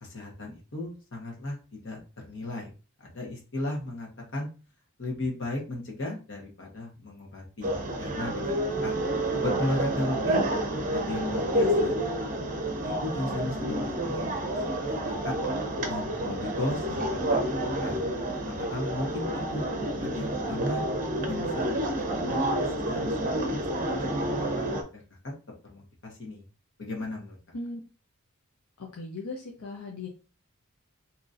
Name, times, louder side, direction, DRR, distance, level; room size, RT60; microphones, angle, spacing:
voice 1, 0.0-2.7 3.0-4.1 4.3-4.5 5.0-8.9 9.4-10.4 10.9-11.9 12.8-14.3 14.7-15.3 15.9-19.3 19.5-19.6 20.0-20.8 21.3-21.5 22.0-22.5 22.9-24.3 24.6-24.7 24.9-25.0 25.6-26.4 26.8-27.4, left 2 dB, 60° left, 0 dB, 1.2 m, -35 dB
sound 1, 7.6-24.8, right 1 dB, 40° right, 0.7 m, -29 dB
voice 2, 28.8-30.1, left 2 dB, 90° left, -1 dB, 0.7 m, -38 dB
4.0 x 2.9 x 2.5 m, 0.34 s
head